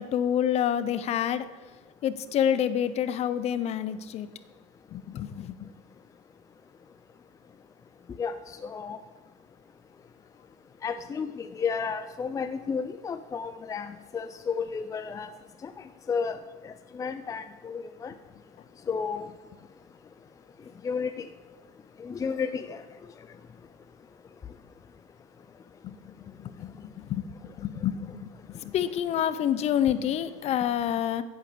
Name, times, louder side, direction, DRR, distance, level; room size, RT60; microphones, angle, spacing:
voice 1, 0.0-1.5 2.0-4.3 4.9-5.7 25.8-31.2, left 9 dB, 40° left, 13 dB, 1.0 m, -28 dB
voice 2, 8.6-9.0 10.8-15.3 15.6-15.7 16.1-16.4 16.6-18.1 18.9-19.3 20.8-21.2 22.0-22.8, left 5 dB, 20° left, 9 dB, 0.6 m, -32 dB
15.0 x 8.4 x 7.0 m, 1.3 s
supercardioid pair, 120°, 16 cm